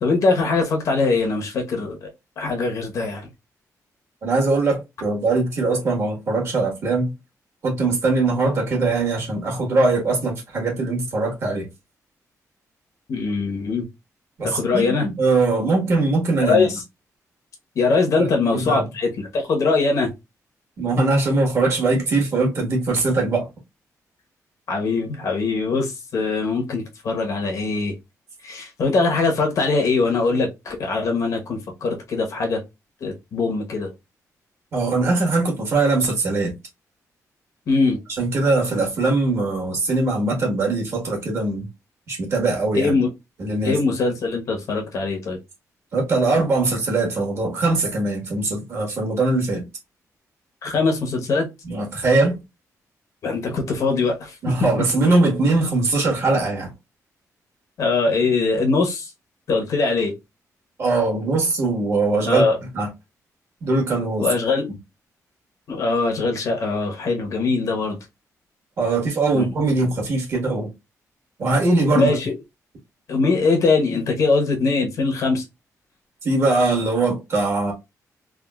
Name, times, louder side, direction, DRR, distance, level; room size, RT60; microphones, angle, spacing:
voice 1, 0.0-2.1 2.4-3.3 13.1-13.8 14.4-15.1 16.4-16.8 17.8-20.1 24.7-27.9 28.4-32.6 33.0-33.9 37.7-38.0 42.7-43.1 43.6-45.4 50.6-51.4 53.2-54.3 55.0-55.1 57.8-59.1 59.5-60.1 62.3-62.6 64.2-64.7 65.7-68.0 69.3-69.5 71.9-72.3 73.1-75.4, left 3 dB, 60° left, 0.9 m, -22 dB
voice 2, 4.2-7.1 7.6-11.7 14.4-16.7 18.2-18.9 20.8-23.5 34.7-36.5 38.2-41.7 42.1-42.9 43.4-43.8 45.9-49.6 51.6-52.4 54.4-56.7 60.8-62.4 62.7-62.9 63.6-64.3 68.8-70.7 71.4-72.1 76.2-77.7, right 3 dB, 45° right, 1.3 m, -21 dB
3.6 x 2.3 x 2.3 m
wide cardioid pair, 165°, 6 cm